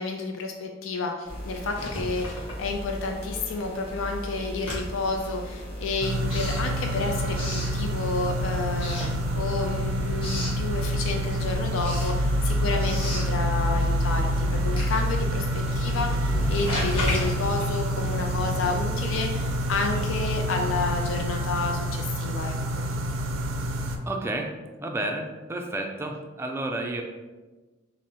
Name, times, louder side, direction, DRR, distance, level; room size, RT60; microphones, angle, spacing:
voice 1, 0.0-15.5 15.8-22.8, left 3 dB, 85° left, 2 dB, 0.4 m, -30 dB
sound 1, 1.3-21.2, equal, 60° left, 1.2 m, -32 dB
Writing, 1.6-3.2 3.5-8.3 8.7-9.7 10.0-10.6 11.1-18.7, left 1 dB, 30° left, 1.2 m, -36 dB
sound 2, 6.0-24.0, equal, 90° right, 0.5 m, -29 dB
voice 2, 24.0-24.5 24.8-27.0, right 2 dB, 15° right, 2 dB, 0.3 m, -31 dB
6.1 x 2.0 x 2.8 m, 1.2 s
head